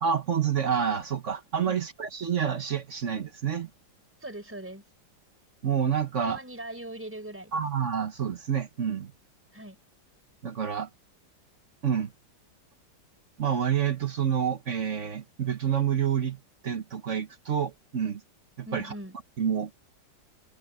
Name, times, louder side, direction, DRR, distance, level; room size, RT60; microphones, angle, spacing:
voice 1, 0.0-3.7 5.6-6.4 7.5-9.1 10.4-10.9 11.8-12.1 13.4-18.2 18.6-18.9 19.4-19.7, right 8 dB, 45° right, 1.3 m, -28 dB
voice 2, 4.2-4.8 6.2-7.6 9.5-9.8 18.7-19.1, right 1 dB, 5° right, 4.6 m, -40 dB
omnidirectional pair, 2.1 m